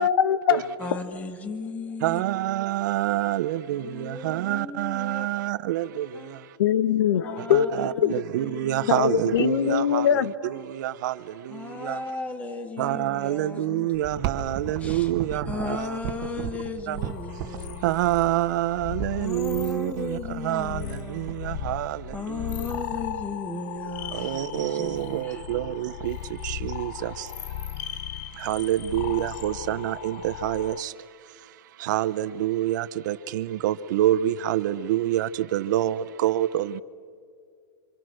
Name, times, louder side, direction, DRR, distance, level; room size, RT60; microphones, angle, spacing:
voice 1, 0.0-0.7 6.6-8.1 8.9-10.3, left 9 dB, 80° left, 1.2 m, -22 dB
voice 2, 0.8-2.2 3.6-5.3 6.1-6.4 7.2-9.0 9.5-9.7 10.4-10.7 11.5-13.9 14.8-18.1 19.2-21.4 22.1-25.4, left 3 dB, 10° left, 1.8 m, -36 dB
voice 3, 2.0-6.6 7.4-12.0 12.8-16.0 16.9-17.0 17.6-22.4 24.1-36.8, right 13 dB, 55° right, 0.8 m, -27 dB
sound 1, 13.9-19.6 20.5-20.6 20.9-21.0 21.3-21.8 22.1-22.5 22.7-23.6 24.2-24.3 24.7-25.0 25.4-25.5 25.6-26.2 26.7-27.5 27.9-28.0 28.9-29.0, right 9 dB, 35° right, 1.8 m, -35 dB
sound 2, 17.0-30.8, left 11 dB, 45° left, 0.6 m, -37 dB
27.5 x 26.0 x 6.4 m
supercardioid pair, 160°, 12 cm